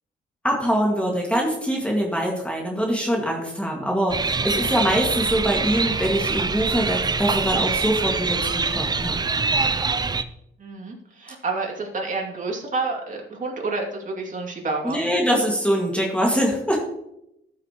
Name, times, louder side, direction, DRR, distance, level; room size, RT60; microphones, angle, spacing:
voice 1, 0.4-9.2 14.8-16.8, equal, 5° left, -2 dB, 2.0 m, -23 dB
sound 1, 4.1-10.2, right 4 dB, 20° right, 0.5 m, -24 dB
voice 2, 10.6-15.0, right 3 dB, 40° right, -1 dB, 2.6 m, -29 dB
13.5 x 6.4 x 3.0 m, 0.82 s
cardioid pair, 90°, 20 cm